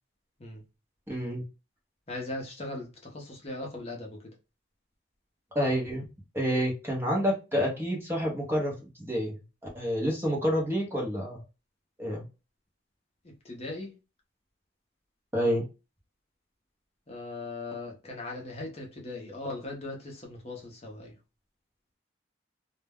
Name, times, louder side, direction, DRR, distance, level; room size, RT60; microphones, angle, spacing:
voice 1, 1.1-1.4 5.5-6.1 6.3-9.4 9.7-11.4 12.0-12.2 15.3-15.6, equal, 10° right, 0.7 m, -28 dB
voice 2, 2.1-4.3 13.4-13.9 17.1-21.2, left 2 dB, 35° left, 0.6 m, -39 dB
2.2 x 2.1 x 3.4 m
head